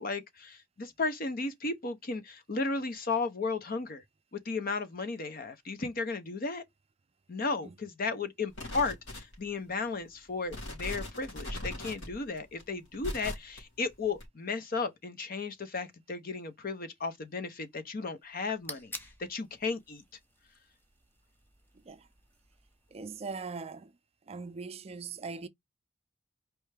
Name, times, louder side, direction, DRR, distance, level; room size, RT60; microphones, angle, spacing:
voice 1, 0.0-4.0 4.3-6.6 7.3-18.9 19.3-20.0, left 4 dB, 50° left, 0.7 m, -34 dB
sound 1, 8.5-9.6 10.1-10.2 10.5-13.6 14.2-14.3, left 1 dB, 75° left, 2.9 m, -39 dB
sound 2, 18.2-23.4, left 1 dB, 10° left, 0.8 m, -50 dB
voice 2, 22.9-23.9 24.3-25.5, right 4 dB, 35° right, 0.4 m, -40 dB
4.5 x 3.2 x 3.3 m
head